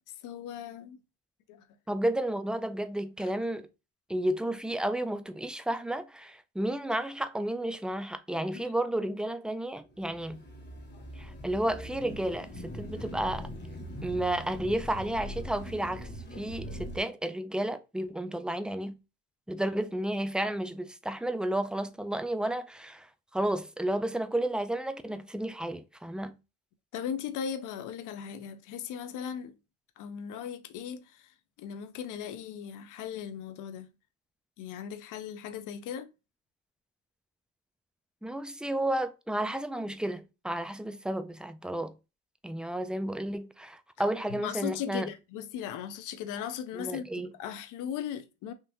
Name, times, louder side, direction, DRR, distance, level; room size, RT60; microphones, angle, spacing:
voice 1, 0.2-1.0 1.5-1.6 3.2-3.3 8.5-8.6 10.9-11.0 26.9-29.6 30.0-33.9 34.6-36.1 44.3-47.1 47.4-48.5, left 9 dB, 90° left, 0.5 m, -38 dB
voice 2, 1.9-3.7 4.1-10.4 11.2-13.5 14.0-16.1 16.4-19.0 19.5-23.1 23.3-26.4 38.2-42.0 42.4-45.1 46.7-47.3, right 1 dB, 5° right, 0.3 m, -32 dB
sound 1, 9.9-17.0, equal, 35° left, 1.2 m, -41 dB
3.6 x 2.8 x 2.6 m
cardioid pair, 90°, 30 cm